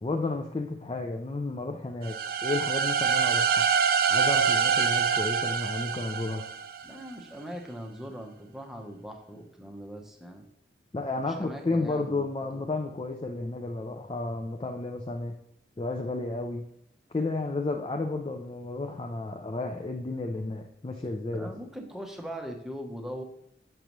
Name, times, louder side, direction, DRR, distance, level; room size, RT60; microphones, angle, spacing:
voice 1, 0.0-3.6 4.1-6.5 10.9-15.3 15.8-16.7 17.1-21.5, left 2 dB, 30° left, 3 dB, 0.4 m, -32 dB
sound 1, 2.0-6.9, right 6 dB, 50° right, 0.4 m, -25 dB
voice 2, 6.8-10.5 11.2-12.3 12.5-12.6 21.3-23.2, equal, ahead, 2 dB, 0.7 m, -40 dB
6.6 x 6.0 x 3.0 m, 0.72 s
head